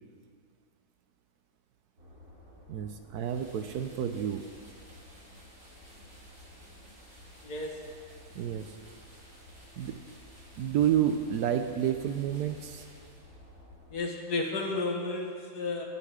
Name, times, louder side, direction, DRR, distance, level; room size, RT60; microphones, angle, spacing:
sound 1, 2.0-14.0, left 1 dB, 65° right, 3.7 m, -54 dB
voice 1, 2.7-4.5 8.3-8.7 9.8-10.0 10.6-12.8, right 10 dB, 80° right, 7 dB, 1.2 m, -30 dB
sound 2, 3.1-13.5, equal, 40° right, 4.6 m, -57 dB
voice 2, 7.4-7.9 13.9-15.8, left 3 dB, 75° left, 0 dB, 2.3 m, -32 dB
22.5 x 9.8 x 3.7 m, 2.1 s
omnidirectional pair, 1.6 m